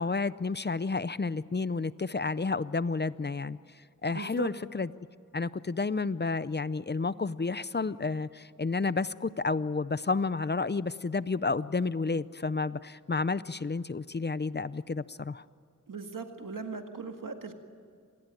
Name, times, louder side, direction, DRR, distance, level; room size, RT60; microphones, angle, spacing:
voice 1, 0.0-3.6 4.0-4.9 5.3-15.4, left 4 dB, 35° left, 17 dB, 0.6 m, -31 dB
voice 2, 4.1-4.5 15.9-17.5, right 5 dB, 90° right, 5 dB, 2.0 m, -39 dB
27.0 x 19.5 x 9.1 m, 2.2 s
wide cardioid pair, 65°, 32 cm